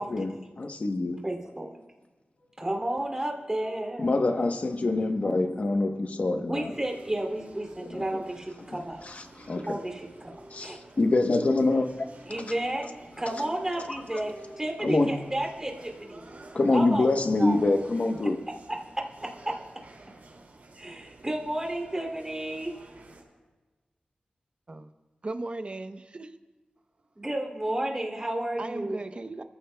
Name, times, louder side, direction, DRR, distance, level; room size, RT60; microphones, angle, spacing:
voice 1, 0.0-1.2 4.0-6.7 7.9-8.0 9.0-9.8 10.5-12.1 14.8-15.2 16.5-18.5, left 2 dB, 50° left, 1.0 m, -25 dB
voice 2, 1.2-1.7 2.6-4.2 5.2-5.3 6.5-9.0 9.7-10.3 10.6-10.8 12.3-12.9 13.2-16.2 16.7-17.1 17.4-17.6 18.7-18.8 19.2-19.6 20.8-22.7 27.2-29.0, right 1 dB, 20° right, 2.7 m, -32 dB
sound 1, 2.4-16.8, equal, 75° left, 3.7 m, -52 dB
sound 2, 6.7-23.2, right 2 dB, 85° right, 2.5 m, -52 dB
voice 3, 25.2-26.4 28.6-29.4, right 2 dB, 40° right, 0.8 m, -37 dB
29.5 x 14.5 x 2.3 m
wide cardioid pair, 110°, 3 cm